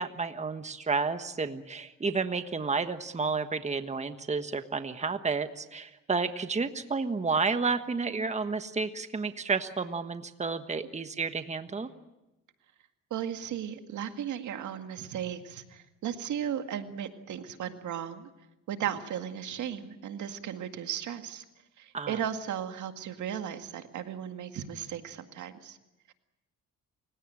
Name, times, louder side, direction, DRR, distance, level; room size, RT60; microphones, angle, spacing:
voice 1, 0.0-11.9 21.9-22.2, right 4 dB, 25° right, 9 dB, 1.3 m, -31 dB
voice 2, 13.1-18.3 18.7-21.4 21.8-25.8 26.1-26.2, right 9 dB, 75° right, 7 dB, 2.0 m, -36 dB
29.0 x 17.0 x 8.9 m, 0.97 s
cardioid pair, 90°, 30 cm